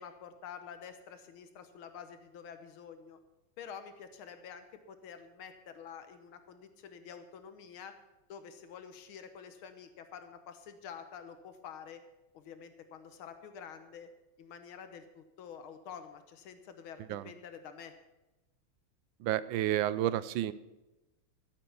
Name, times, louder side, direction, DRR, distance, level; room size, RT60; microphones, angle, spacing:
voice 1, 0.0-3.2 3.6-7.9 8.3-12.0 12.3-14.1 14.4-17.9, left 7 dB, 75° left, 9 dB, 1.7 m, -48 dB
voice 2, 19.2-20.5, right 12 dB, 75° right, 16 dB, 1.2 m, -30 dB
13.5 x 7.6 x 7.0 m, 1.0 s
omnidirectional pair, 2.4 m